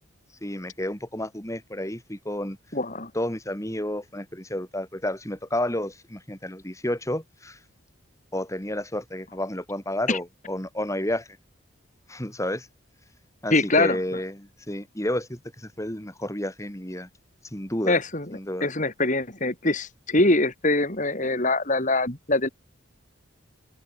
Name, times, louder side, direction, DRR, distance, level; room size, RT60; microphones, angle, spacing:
voice 1, 0.4-2.6 3.1-7.6 8.3-11.3 12.1-12.7 13.4-17.1 17.5-18.0 18.3-18.7, left 1 dB, 15° left, 4.4 m, -31 dB
voice 2, 2.7-3.1 10.1-10.2 13.5-14.0 17.9-22.5, left 2 dB, 40° left, 4.2 m, -23 dB
head